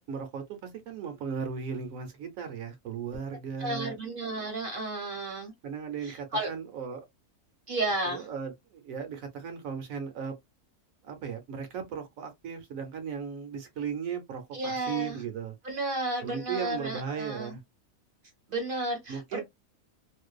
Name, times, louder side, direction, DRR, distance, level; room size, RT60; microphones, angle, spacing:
voice 1, 0.0-4.0 5.6-7.0 8.1-10.3 11.0-15.5 16.2-17.6 19.1-19.4, right 6 dB, 70° right, 1.0 m, -36 dB
voice 2, 3.6-5.5 6.0-6.5 7.7-8.3 14.5-15.2 15.6-17.6 18.5-19.4, right 2 dB, 45° right, 0.8 m, -32 dB
2.5 x 2.2 x 2.2 m
omnidirectional pair, 1.6 m